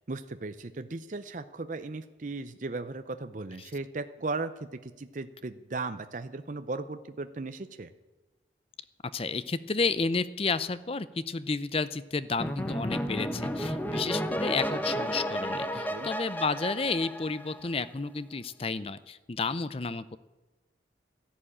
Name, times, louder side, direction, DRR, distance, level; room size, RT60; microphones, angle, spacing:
voice 1, 0.1-4.5 4.8-7.9 15.9-16.1, right 3 dB, 45° right, 10 dB, 0.6 m, -36 dB
voice 2, 9.1-20.2, left 4 dB, 30° left, 15 dB, 0.5 m, -31 dB
sound 1, 12.4-17.8, equal, 10° left, 0.9 m, -32 dB
14.0 x 11.5 x 8.7 m, 1.2 s
head